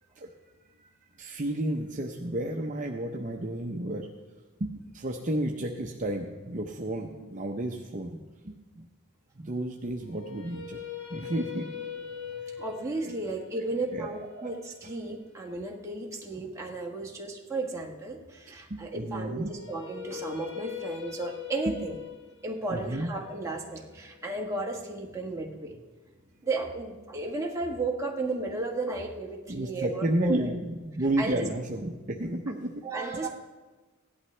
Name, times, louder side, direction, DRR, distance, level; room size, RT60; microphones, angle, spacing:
voice 1, 1.2-4.1 4.6-8.2 8.4-8.9 9.4-10.8 11.1-11.7 13.0-13.2 13.6-13.7 13.9-14.6 18.7-19.5 21.7-21.8 22.7-23.1 29.5-32.8, right 1 dB, 35° right, 1 dB, 0.7 m, -32 dB
sound 1, 10.0-16.1 19.4-25.4, left 9 dB, 55° left, 1.2 m, -42 dB
voice 2, 12.6-22.0 22.4-25.7 26.4-30.5 31.2-31.4 32.8-33.3, right 3 dB, 15° right, -1 dB, 1.3 m, -34 dB
16.5 x 11.0 x 3.3 m, 1.2 s
head